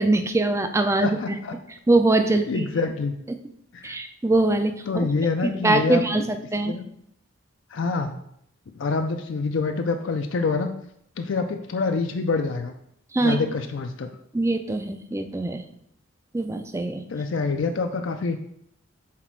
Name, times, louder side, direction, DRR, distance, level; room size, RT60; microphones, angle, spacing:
voice 1, 0.0-1.2 1.9-2.7 3.8-5.1 5.4-6.7 13.1-13.4 14.3-15.6 16.3-17.0, right 2 dB, 15° right, 7 dB, 0.4 m, -22 dB
voice 2, 1.0-1.5 2.5-3.1 3.7-4.0 4.9-6.3 6.6-6.9 7.7-8.1 8.8-10.7 11.2-12.7 13.2-14.1 17.1-18.4, left 4 dB, 65° left, 5 dB, 0.4 m, -26 dB
5.9 x 4.1 x 4.6 m, 0.72 s
head